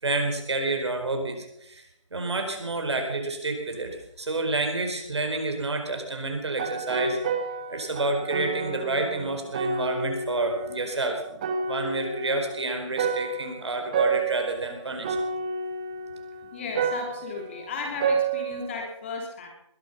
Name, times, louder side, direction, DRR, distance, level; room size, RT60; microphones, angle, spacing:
voice 1, 0.0-1.8 2.1-7.2 7.7-11.2 11.7-15.2, right 2 dB, 60° right, 4 dB, 4.7 m, -29 dB
sound 1, 6.5-10.9 11.3-18.9, right 4 dB, 15° right, 0.8 m, -30 dB
voice 2, 16.5-19.5, left 4 dB, 25° left, 1 dB, 3.1 m, -35 dB
21.0 x 11.5 x 5.8 m, 0.78 s
figure-of-eight pair, 160°, 16 cm